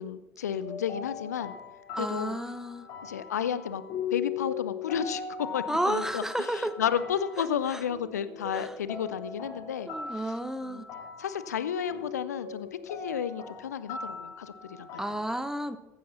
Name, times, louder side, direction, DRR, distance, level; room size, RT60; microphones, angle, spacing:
voice 1, 0.0-1.5 1.9-2.4 3.0-3.8 4.1-9.9 10.6-10.8 11.2-14.9, left 8 dB, 85° left, 15 dB, 0.5 m, -32 dB
sound 1, 0.6-15.2, left 6 dB, 55° left, 3.6 m, -39 dB
voice 2, 2.0-2.9 5.7-6.8 7.7-7.8 8.5-8.7 9.9-10.8 15.0-15.8, right 1 dB, 5° right, 11 dB, 1.0 m, -32 dB
15.0 x 11.5 x 4.2 m, 1.1 s
figure-of-eight pair, 60°, 9 cm